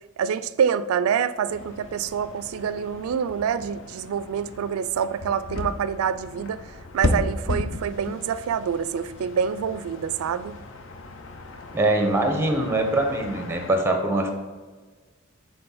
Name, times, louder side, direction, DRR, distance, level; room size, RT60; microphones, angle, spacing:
voice 1, 0.2-6.6 6.9-10.6, right 7 dB, 90° right, 15 dB, 0.3 m, -26 dB
sound 1, 1.5-13.7, left 2 dB, 60° left, 0.6 m, -34 dB
voice 2, 11.7-14.3, right 2 dB, 10° right, 5 dB, 0.8 m, -23 dB
6.9 x 3.6 x 5.5 m, 1.4 s
head